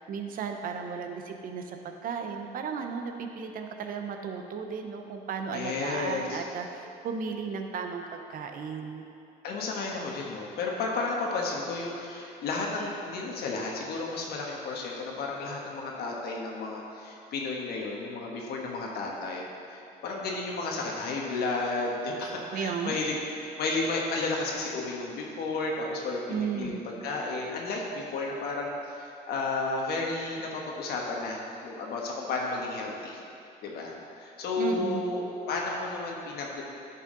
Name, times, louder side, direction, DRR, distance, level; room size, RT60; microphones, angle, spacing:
voice 1, 0.0-9.0 22.5-23.0 26.3-26.9 34.6-35.0, right 6 dB, 55° right, 5 dB, 0.8 m, -34 dB
voice 2, 5.5-6.4 9.4-23.1 23.6-33.2 33.6-35.2 35.5-36.6, left 3 dB, 70° left, -1 dB, 1.3 m, -32 dB
10.5 x 5.6 x 3.9 m, 2.8 s
cardioid pair, 110°, 17 cm